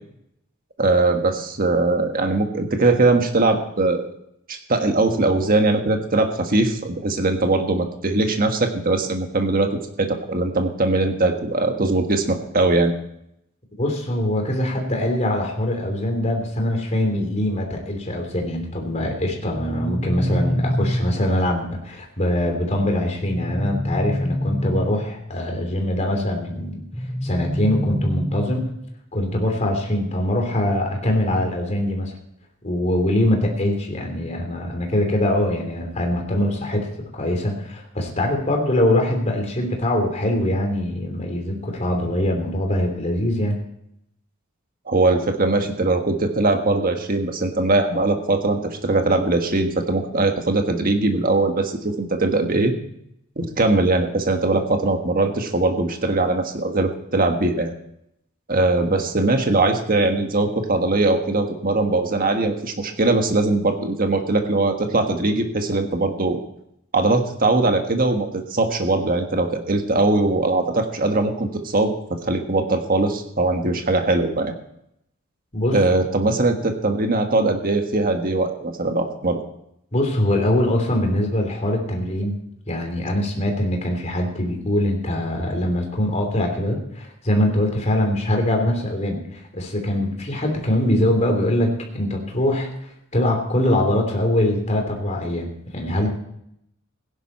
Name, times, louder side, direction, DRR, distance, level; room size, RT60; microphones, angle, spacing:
voice 1, 0.8-4.1 4.5-9.7 10.0-12.9 44.9-52.7 53.4-57.7 58.5-66.4 66.9-74.5 75.7-79.4, right 2 dB, 45° right, 5 dB, 1.5 m, -21 dB
voice 2, 13.8-26.8 27.2-28.7 29.1-32.1 32.6-36.9 37.1-43.6 75.5-75.8 79.9-82.4 82.7-92.7 93.1-96.1, left 1 dB, 35° left, 2 dB, 3.1 m, -23 dB
sound 1, 19.5-21.6 23.2-25.3 26.9-28.9, equal, ahead, 0.8 m, -26 dB
16.5 x 10.5 x 4.3 m, 0.76 s
head